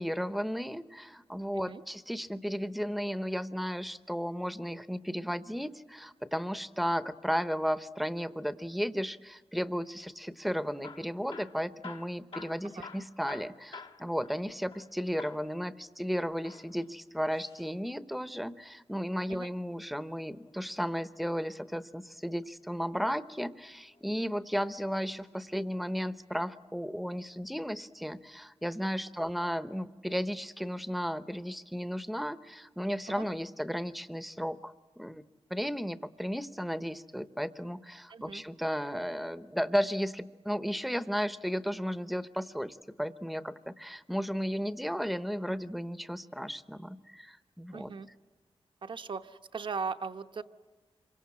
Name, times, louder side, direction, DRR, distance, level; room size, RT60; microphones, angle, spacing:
voice 1, 0.0-35.2 35.5-47.9, equal, ahead, 13 dB, 0.8 m, -34 dB
Hammer / Drill, 10.7-14.9 15.2-15.5 16.3-17.7 19.5-20.7 22.4-22.9 23.6-24.4 25.1-25.4 25.7-25.8 26.4-26.5, left 4 dB, 75° left, 1.6 m, -49 dB
voice 2, 38.1-38.4 47.7-48.1 48.8-50.4, right 5 dB, 55° right, 9 dB, 1.0 m, -38 dB
27.0 x 24.0 x 8.6 m, 1.4 s
wide cardioid pair, 125°, 10 cm